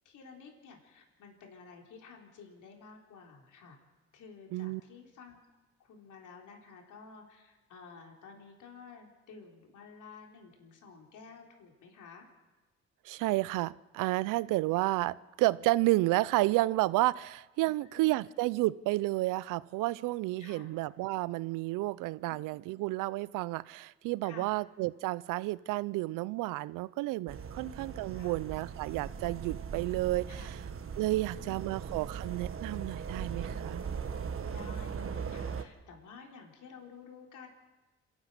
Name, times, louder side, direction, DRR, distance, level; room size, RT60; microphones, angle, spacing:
voice 1, 0.0-3.8 4.1-5.5 5.8-12.3 17.6-18.3 20.4-20.7 22.2-22.6 24.2-24.5 27.5-28.4 30.3-30.6 31.2-31.8 34.5-37.5, left 5 dB, 70° left, 3.9 m, -52 dB
voice 2, 13.0-30.6 31.0-33.8, right 19 dB, 80° right, 0.5 m, -31 dB
sound 1, 27.3-35.6, right 6 dB, 45° right, 1.5 m, -39 dB
27.0 x 12.5 x 8.0 m
supercardioid pair, 65°, 31 cm